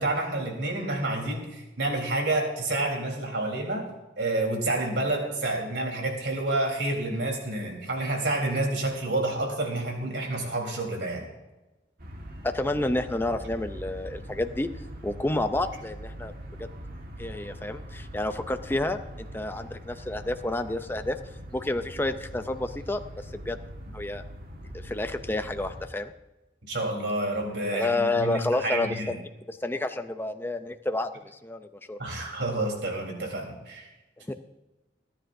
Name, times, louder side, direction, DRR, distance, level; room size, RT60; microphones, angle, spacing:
voice 1, 0.0-3.8 4.2-11.3 26.7-29.1 32.0-33.9, right 2 dB, 75° right, 0 dB, 3.8 m, -29 dB
sound 1, 12.0-25.9, equal, 55° right, 1.7 m, -42 dB
voice 2, 12.5-14.7 15.0-16.3 17.2-21.2 21.5-23.0 23.5-23.6 23.9-24.2 24.8-26.1 27.7-29.2 29.5-31.1 31.4-32.0 34.3-34.4, left 2 dB, 10° left, 8 dB, 0.5 m, -29 dB
29.0 x 10.0 x 2.7 m, 1.1 s
head